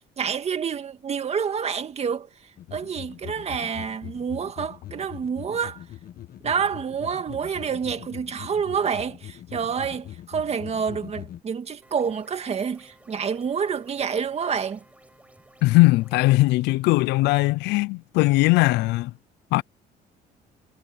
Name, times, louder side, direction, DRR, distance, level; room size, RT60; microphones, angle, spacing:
voice 1, 0.2-2.3 2.7-5.8 6.4-14.8, right 6 dB, 40° right, 2.1 m, -28 dB
sound 1, 2.6-11.4, left 12 dB, 60° left, 1.4 m, -42 dB
sound 2, 11.8-16.2, right 1 dB, 10° right, 6.9 m, -55 dB
voice 2, 15.6-19.1 19.5-19.6, left 20 dB, 85° left, 0.5 m, -19 dB
cardioid pair, 110°, 17 cm